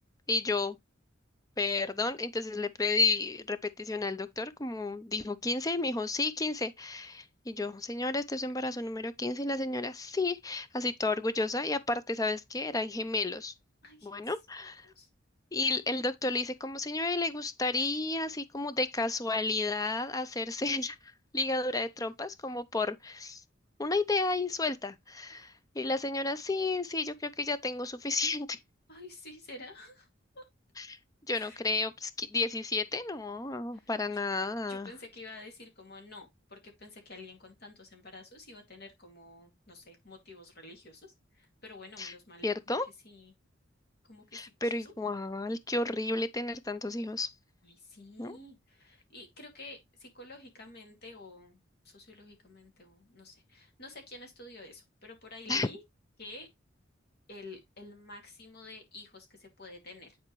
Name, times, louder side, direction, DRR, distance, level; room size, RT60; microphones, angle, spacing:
voice 1, 0.3-0.8 1.6-13.5 14.0-14.9 15.5-23.4 23.8-28.6 30.8-31.0 31.3-34.9 42.0-42.1 42.4-42.9 44.3-47.3 48.2-48.4 55.5-55.7, left 3 dB, 20° left, 0.5 m, -32 dB
voice 2, 13.8-14.1 14.8-15.1 25.3-25.4 28.9-30.1 30.3-30.4 31.3-31.6 33.7-34.2 34.7-42.7 43.0-43.3 44.1-44.9 47.6-51.6 51.8-55.8 56.2-56.5 57.3-60.2, left 2 dB, 55° left, 2.5 m, -50 dB
9.9 x 4.3 x 3.1 m
head